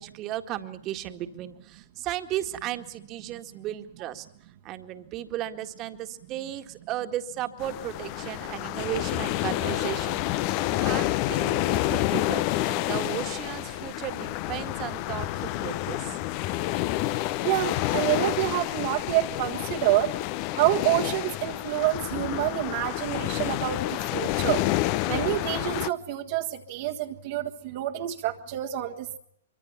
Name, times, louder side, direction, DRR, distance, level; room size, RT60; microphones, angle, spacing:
voice 1, 0.0-4.3 4.6-16.2, right 12 dB, 35° right, 7 dB, 1.9 m, -35 dB
sound 1, 7.6-25.9, left 16 dB, 40° left, 0.8 m, -29 dB
voice 2, 17.4-20.1 20.6-24.6 25.1-29.2, right 14 dB, 50° right, 0 dB, 1.6 m, -27 dB
24.5 x 24.5 x 5.9 m, 0.69 s
figure-of-eight pair, 110°, 0 cm